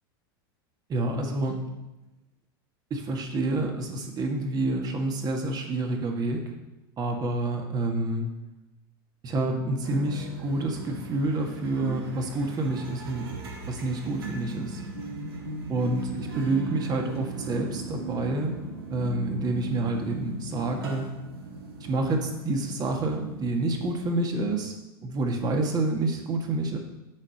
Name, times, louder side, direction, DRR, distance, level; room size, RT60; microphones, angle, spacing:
voice 1, 0.9-1.7 2.9-6.5 7.0-8.3 9.2-13.3 13.7-14.8 15.7-18.6 18.9-21.2 21.8-24.7 25.0-26.8, right 2 dB, 35° right, 2 dB, 1.8 m, -28 dB
sound 1, 9.8-24.4, right 3 dB, 90° right, 1.8 m, -38 dB
7.4 x 5.5 x 6.5 m, 1.0 s
hypercardioid pair, 110°, 12 cm